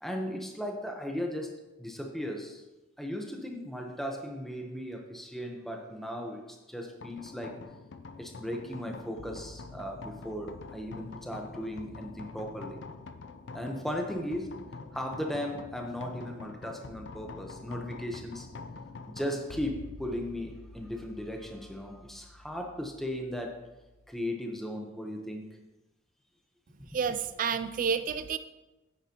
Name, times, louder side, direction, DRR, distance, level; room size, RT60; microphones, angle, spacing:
voice 1, 0.0-2.6 3.0-7.6 8.2-12.8 13.5-14.6 14.9-18.5 19.1-23.6 24.1-25.5 26.9-27.0, equal, ahead, 2 dB, 1.0 m, -37 dB
sound 1, 7.0-24.2, left 3 dB, 60° left, 0.5 m, -46 dB
voice 2, 26.9-28.4, right 6 dB, 45° right, 10 dB, 0.3 m, -30 dB
9.4 x 9.1 x 3.0 m, 1.1 s
head